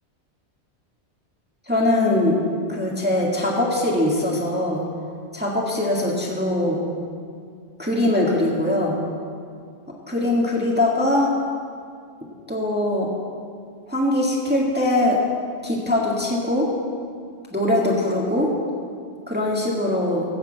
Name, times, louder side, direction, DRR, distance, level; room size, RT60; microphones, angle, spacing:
voice 1, 1.7-2.4 2.7-4.8 5.3-6.8 7.8-9.0 10.1-11.3 12.5-13.1 13.9-15.2 15.6-16.7 17.5-18.5 19.3-20.2, left 1 dB, 10° right, -4 dB, 1.7 m, -21 dB
15.0 x 6.6 x 8.0 m, 2.2 s
omnidirectional pair, 1.2 m